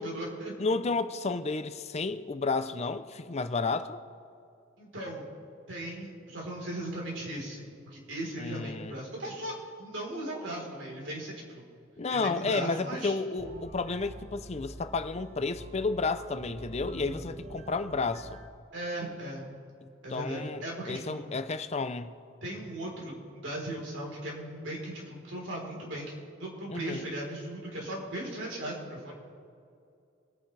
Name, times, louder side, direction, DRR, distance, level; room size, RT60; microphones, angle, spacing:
voice 1, 0.0-0.5 4.8-5.3 5.7-9.5 9.8-11.6 12.1-13.1 18.7-19.4 20.0-21.2 22.4-26.1 26.4-29.1, right 1 dB, 70° right, 3.8 m, -37 dB
voice 2, 0.6-4.0 8.4-9.0 12.0-18.4 20.1-22.1 26.7-27.1, left 4 dB, 35° left, 0.5 m, -32 dB
sound 1, 13.4-18.5, right 1 dB, 30° right, 1.2 m, -45 dB
24.5 x 9.2 x 3.3 m
head